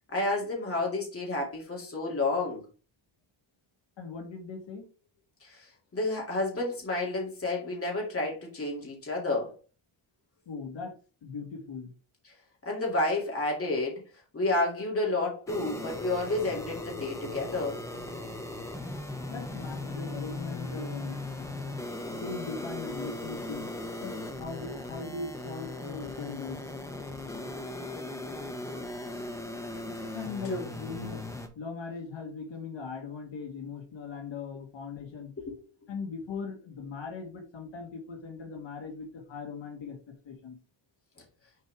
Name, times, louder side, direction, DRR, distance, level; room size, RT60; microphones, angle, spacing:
voice 1, 0.1-2.6 5.4-9.5 12.3-12.4 12.7-14.0 14.3-17.8 30.4-30.7 35.4-35.5, left 2 dB, 30° left, 2.2 m, -30 dB
voice 2, 4.0-4.8 10.5-10.9 11.2-11.9 19.3-21.2 22.1-23.7 24.0-26.6 30.1-31.2 31.6-35.3 35.9-40.6, left 4 dB, 70° left, 1.4 m, -39 dB
sound 1, 15.5-31.5, left 2 dB, 5° left, 0.7 m, -38 dB
6.5 x 4.7 x 3.2 m
wide cardioid pair, 175°, 47 cm